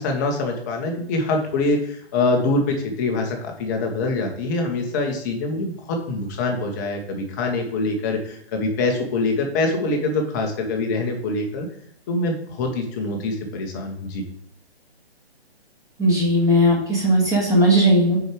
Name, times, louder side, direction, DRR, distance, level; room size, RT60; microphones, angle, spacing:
voice 1, 0.0-11.7 12.1-14.2, left 2 dB, 15° left, 2 dB, 0.8 m, -24 dB
voice 2, 16.0-18.2, equal, 10° right, -4 dB, 1.8 m, -17 dB
6.3 x 4.7 x 4.7 m, 0.70 s
hypercardioid pair, 150°, 33 cm